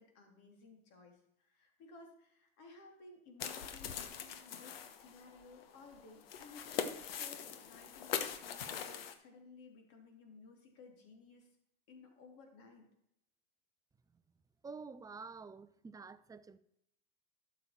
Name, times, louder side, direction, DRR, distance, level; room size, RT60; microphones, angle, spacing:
voice 1, 0.0-11.5 11.9-12.9, left 3 dB, 55° left, 3.3 m, -57 dB
sound 1, 3.4-9.1, left 8 dB, 75° left, 1.2 m, -42 dB
voice 2, 14.6-16.6, right 4 dB, 10° right, 0.5 m, -49 dB
12.0 x 7.2 x 4.5 m
hypercardioid pair, 95°, 29 cm